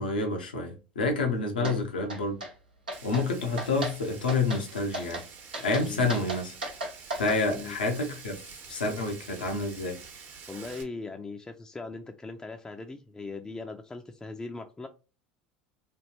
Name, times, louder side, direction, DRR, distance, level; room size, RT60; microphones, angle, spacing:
voice 1, 0.0-2.4 3.0-5.2 5.6-6.5 7.2-8.4 8.7-10.0, left 3 dB, 85° left, 0.8 m, -28 dB
sound 1, 1.6-1.8 2.1-2.5 2.9-3.2 3.6-4.0 4.3-4.6 4.9-5.3 5.5-7.4, right 1 dB, 90° right, 0.9 m, -35 dB
Frying (food), 2.9-10.8, right 5 dB, 50° right, 1.0 m, -47 dB
voice 2, 10.5-14.9, left 3 dB, 15° left, 0.5 m, -39 dB
3.3 x 2.4 x 2.7 m
hypercardioid pair, 75°, 5 cm